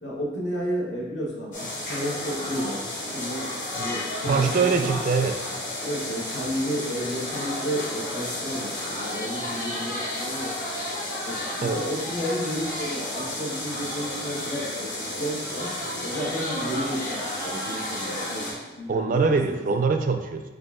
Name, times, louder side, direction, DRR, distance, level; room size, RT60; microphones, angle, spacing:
voice 1, 0.0-3.4 3.8-4.9 5.8-10.5 11.2-15.7 16.0-19.6, equal, 65° left, -5 dB, 1.3 m, -32 dB
sound 1, 1.5-18.5, left 1 dB, 45° left, 1.4 m, -32 dB
voice 2, 4.2-5.4 6.4-6.5 11.6-11.8 18.9-20.4, right 4 dB, 45° right, 7 dB, 0.3 m, -23 dB
7.4 x 2.5 x 2.4 m, 1.2 s
head